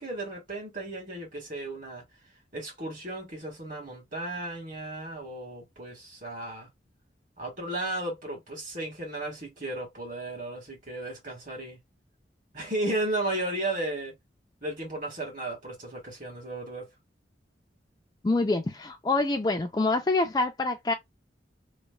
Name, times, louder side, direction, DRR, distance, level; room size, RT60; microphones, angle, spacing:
voice 1, 0.0-2.0 2.5-6.7 7.4-11.8 12.5-14.1 14.6-16.9, right 2 dB, 45° right, 1.5 m, -34 dB
voice 2, 18.2-20.9, left 2 dB, 20° left, 0.3 m, -26 dB
3.1 x 2.1 x 2.2 m
head